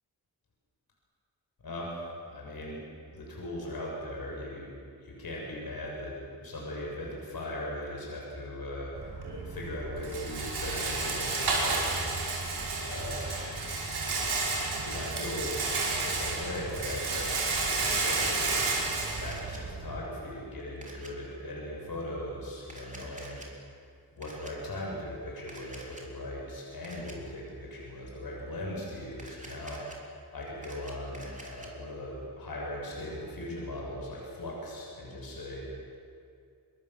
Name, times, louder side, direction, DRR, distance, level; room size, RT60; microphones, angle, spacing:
voice 1, 1.6-2.8 3.1-4.7 5.0-9.1 9.4-13.8 14.8-15.6 16.0-17.4 17.6-23.8 24.1-35.7, left 1 dB, 65° left, -3 dB, 7.3 m, -39 dB
Rattle, 9.0-20.0, right 3 dB, 85° right, 5.4 m, -31 dB
Camera, 19.1-19.6 20.8-21.1 22.6-23.5 24.2-24.5 25.5-26.0 26.8-27.1 29.1-30.0 30.4-31.7, right 1 dB, 20° right, 3.9 m, -48 dB
26.0 x 22.5 x 7.7 m, 2.3 s
wide cardioid pair, 115°, 38 cm